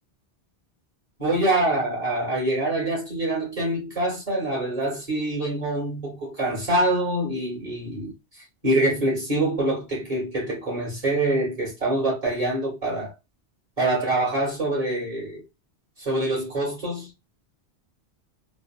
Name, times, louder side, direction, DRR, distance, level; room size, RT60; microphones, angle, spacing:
voice 1, 1.2-8.1 8.6-13.1 13.8-15.4 16.0-17.1, right 1 dB, 35° right, 2.0 m, -25 dB
4.2 x 2.0 x 2.2 m
omnidirectional pair, 1.1 m